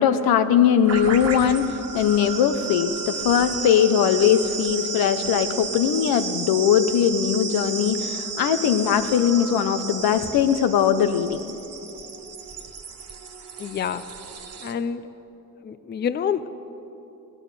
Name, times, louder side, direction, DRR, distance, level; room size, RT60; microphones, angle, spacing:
voice 1, 0.0-11.4, left 8 dB, 90° left, 10 dB, 0.9 m, -20 dB
sound 1, 0.9-14.7, right 5 dB, 40° right, 1.4 m, -33 dB
voice 2, 13.6-14.0 14.6-15.1 15.6-16.5, left 7 dB, 30° left, 12 dB, 0.5 m, -27 dB
17.0 x 11.0 x 6.7 m, 3.0 s
cardioid pair, 125°, 36 cm